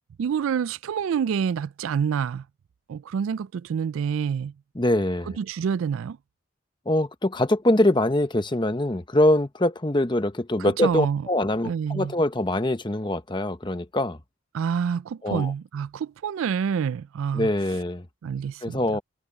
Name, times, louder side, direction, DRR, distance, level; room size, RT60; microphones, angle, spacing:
voice 1, 0.2-2.4 2.9-4.5 5.4-6.2 10.6-11.2 11.6-12.1 14.5-17.5 18.2-19.0, right 7 dB, 75° right, 0.3 m, -27 dB
voice 2, 4.7-5.4 6.9-14.2 15.2-15.5 17.3-18.0 18.6-19.0, left 1 dB, 20° left, 1.0 m, -23 dB
head